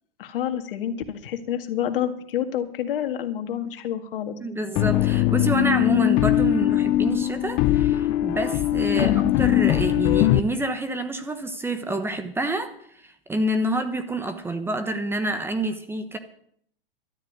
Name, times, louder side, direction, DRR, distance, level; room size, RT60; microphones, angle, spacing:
voice 1, 0.2-4.4 8.9-9.3, left 10 dB, 65° left, 7 dB, 2.0 m, -28 dB
voice 2, 4.4-16.2, right 1 dB, 10° right, 8 dB, 1.1 m, -28 dB
sound 1, 4.8-10.4, left 14 dB, 35° left, 0.6 m, -21 dB
12.5 x 7.5 x 9.4 m, 0.66 s
hypercardioid pair, 130°, 30 cm